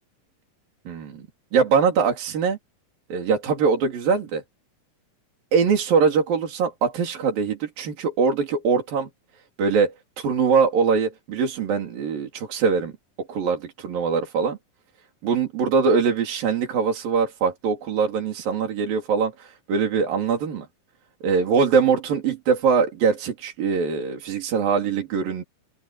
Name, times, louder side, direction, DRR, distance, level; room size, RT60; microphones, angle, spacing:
voice 1, 0.9-1.2 1.5-2.6 3.1-4.4 5.5-9.1 9.6-12.9 13.3-14.6 15.2-20.7 21.2-25.4, right 5 dB, 75° right, 5.2 m, -22 dB
open air
omnidirectional pair, 4.1 m